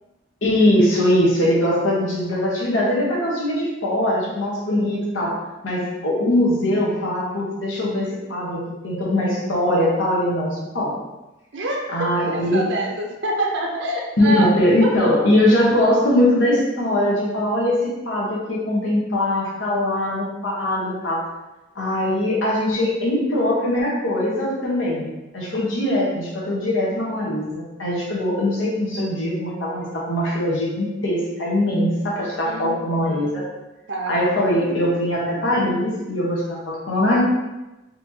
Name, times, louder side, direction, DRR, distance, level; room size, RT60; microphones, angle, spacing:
voice 1, 0.4-5.4 5.6-10.9 11.9-12.6 14.2-17.8 18.0-21.2 21.7-25.1 25.3-33.4 34.1-37.2, left 1 dB, 85° left, -5 dB, 1.3 m, -21 dB
voice 2, 11.5-15.0 32.4-33.4 33.9-34.3 34.7-35.0, right 1 dB, 70° right, 0 dB, 0.7 m, -27 dB
4.2 x 2.9 x 2.8 m, 1.0 s
head